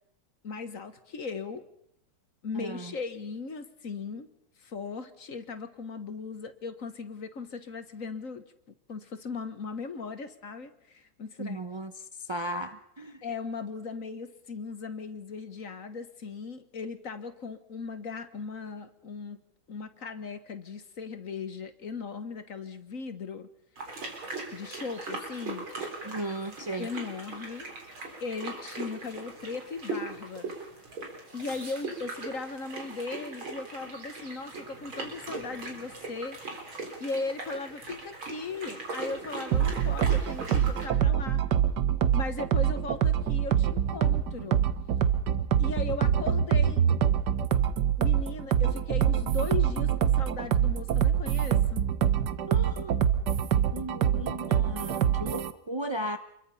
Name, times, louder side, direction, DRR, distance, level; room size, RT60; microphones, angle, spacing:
voice 1, 0.4-1.7 2.4-4.3 4.6-8.4 8.9-11.6 13.2-19.4 19.7-23.5 23.9-24.1 24.5-25.7 26.8-27.7 28.2-30.5 31.3-36.4 37.0-41.4 42.1-44.6 45.6-46.9 48.0-51.9, left 4 dB, 45° left, 10 dB, 1.6 m, -38 dB
voice 2, 2.5-2.9 11.4-13.2 26.0-26.9 52.5-53.1 53.7-56.2, right 1 dB, 30° right, 7 dB, 0.5 m, -36 dB
sound 1, 23.8-40.9, right 3 dB, 85° right, 4.9 m, -40 dB
sound 2, 39.5-55.5, right 9 dB, 60° right, 1.6 m, -25 dB
28.0 x 22.0 x 5.7 m, 0.72 s
omnidirectional pair, 2.2 m